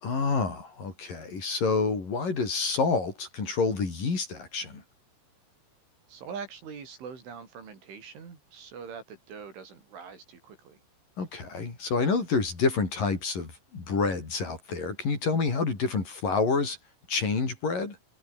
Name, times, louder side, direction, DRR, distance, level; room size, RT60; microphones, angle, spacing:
voice 1, 0.0-4.8 11.2-16.8 17.1-18.0, left 4 dB, 45° left, 6.9 m, -28 dB
voice 2, 6.1-10.8, right 6 dB, 70° right, 7.8 m, -43 dB
omnidirectional pair, 5.7 m